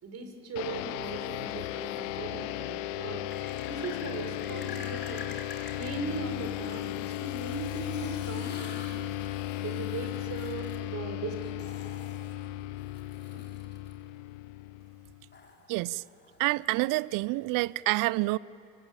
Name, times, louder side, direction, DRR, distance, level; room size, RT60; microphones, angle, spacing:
voice 1, 0.0-3.3 3.6-5.3 5.7-9.1 9.6-11.7, right 4 dB, 45° right, 5.2 m, -39 dB
sound 1, 0.6-15.4, left 15 dB, 85° left, 0.7 m, -36 dB
sound 2, 1.0-2.0 3.3-13.9 15.3-17.1, left 4 dB, 30° left, 4.1 m, -49 dB
voice 2, 15.7-16.0 16.4-18.4, right 21 dB, 60° right, 0.5 m, -28 dB
23.5 x 23.0 x 8.9 m
hypercardioid pair, 80°, 37 cm